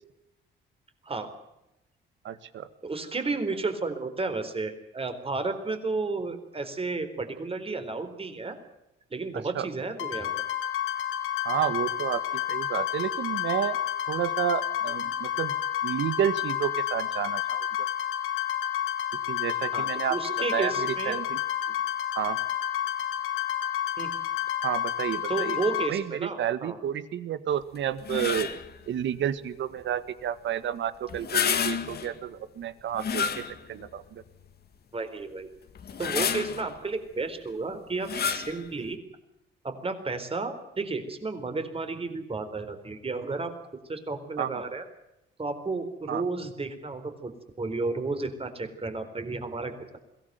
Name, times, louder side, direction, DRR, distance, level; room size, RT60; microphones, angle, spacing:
voice 1, 2.2-2.7 9.5-9.7 11.4-12.2 12.5-13.8 14.1-15.5 15.8-17.7 19.3-20.2 20.5-21.4 22.1-22.4 24.6-25.6 25.9-28.5 28.9-34.2 44.4-44.6 46.1-46.2, right 10 dB, 70° right, 13 dB, 1.7 m, -30 dB
voice 2, 2.8-8.6 9.1-10.4 19.7-21.2 24.0-24.1 25.3-26.8 34.9-35.5 36.0-39.0 39.6-43.5 43.9-44.8 45.4-47.3 47.6-50.0, right 3 dB, 30° right, 8 dB, 4.1 m, -32 dB
sound 1, 10.0-25.9, left 11 dB, 90° left, 4.0 m, -30 dB
sound 2, 28.0-28.7 31.1-32.2 32.9-33.9 34.4-34.5 35.7-36.7 38.0-38.6, left 7 dB, 55° left, 1.8 m, -29 dB
22.0 x 17.0 x 9.4 m, 0.89 s
cardioid pair, 90°, 20 cm